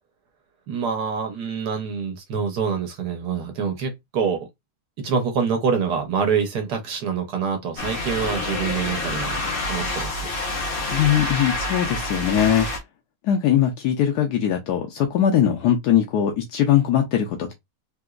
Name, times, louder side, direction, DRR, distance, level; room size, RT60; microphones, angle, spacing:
voice 1, 0.7-4.5 5.0-9.4 9.7-10.3, right 6 dB, 85° right, 1.4 m, -26 dB
sound 1, 7.8-12.8, left 2 dB, 40° left, 1.1 m, -27 dB
voice 2, 10.9-12.7 13.2-17.5, left 10 dB, 85° left, 1.2 m, -20 dB
3.5 x 2.9 x 2.4 m
omnidirectional pair, 1.7 m